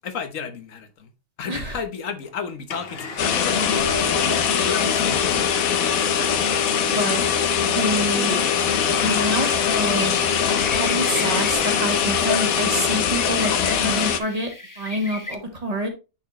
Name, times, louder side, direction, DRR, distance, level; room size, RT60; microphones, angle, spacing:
voice 1, 0.0-1.1 1.4-3.7 4.3-5.6, left 6 dB, 70° left, 1.4 m, -32 dB
Domestic sounds home sounds, 2.2-2.3 2.7-13.8, left 6 dB, 50° left, 1.1 m, -29 dB
sound 1, 3.2-14.2, left 7 dB, 90° left, 1.2 m, -22 dB
voice 2, 6.9-7.2 7.6-8.4 9.0-10.2 10.7-14.5 14.8-15.9, right 1 dB, 30° right, 1.7 m, -27 dB
sound 2, 8.1-15.3, left 2 dB, 20° left, 0.6 m, -37 dB
9.5 x 4.3 x 3.1 m
omnidirectional pair, 1.4 m